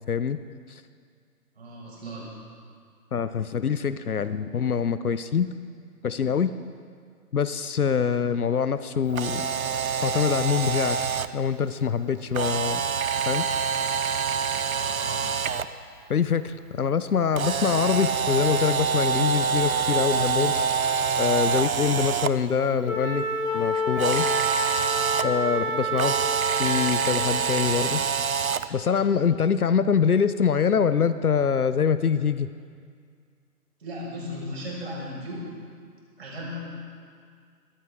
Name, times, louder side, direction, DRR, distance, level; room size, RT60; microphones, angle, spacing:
voice 1, 0.1-0.4 0.7-0.8 3.1-5.5 6.0-6.5 7.3-9.5 10.0-11.0 11.3-12.8 13.3-13.5 16.1-20.5 21.2-23.3 23.5-24.3 25.2-26.2 26.6-28.0 28.7-32.5, left 7 dB, 65° left, 13 dB, 0.8 m, -24 dB
voice 2, 1.6-2.3 14.7-15.3 33.8-35.5 36.2-36.6, equal, 40° right, -4 dB, 5.3 m, -36 dB
Camera, 9.1-11.3 12.3-15.6 17.3-22.3 24.0-25.2 26.0-28.7, right 6 dB, 60° right, 0.7 m, -26 dB
Wind instrument woodwind instrument, 22.8-27.2, equal, 50° left, 2.2 m, -28 dB
21.0 x 15.5 x 3.6 m, 2.1 s
hypercardioid pair, 175°, 48 cm